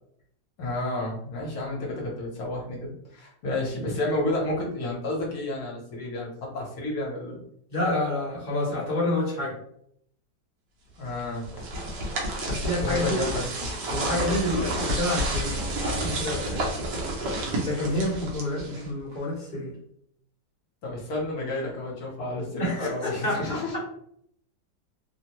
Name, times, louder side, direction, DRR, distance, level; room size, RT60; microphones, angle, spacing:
voice 1, 0.6-7.4 11.0-11.6 12.8-13.5 20.8-23.8, left 2 dB, 65° left, -3 dB, 1.3 m, -31 dB
voice 2, 7.7-9.6 12.5-13.2 13.9-16.7 17.6-19.7 22.6-23.8, left 1 dB, 35° left, -6 dB, 0.9 m, -28 dB
sound 1, 11.2-19.0, right 1 dB, 75° right, 1.4 m, -30 dB
3.3 x 2.1 x 2.9 m, 0.68 s
omnidirectional pair, 1.9 m